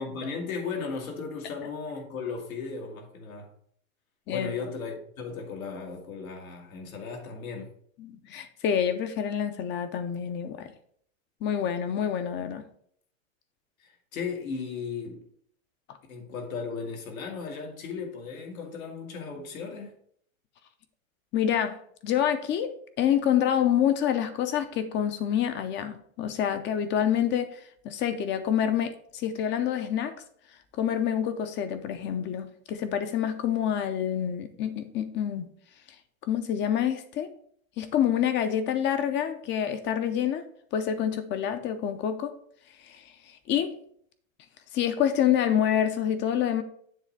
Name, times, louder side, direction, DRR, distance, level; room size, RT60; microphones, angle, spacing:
voice 1, 0.0-3.5 4.3-7.7 13.8-15.2 16.1-19.9, left 5 dB, 90° left, 1.9 m, -36 dB
voice 2, 8.0-10.7 11.4-12.6 15.9-16.0 21.3-21.8 22.0-22.7 23.0-27.6 27.8-30.1 30.8-35.5 36.3-37.3 37.8-40.4 40.7-42.3 42.8-43.0 43.5-43.7 44.7-46.6, left 9 dB, 30° left, 0.6 m, -27 dB
7.5 x 3.2 x 5.9 m
supercardioid pair, 130°, 40 cm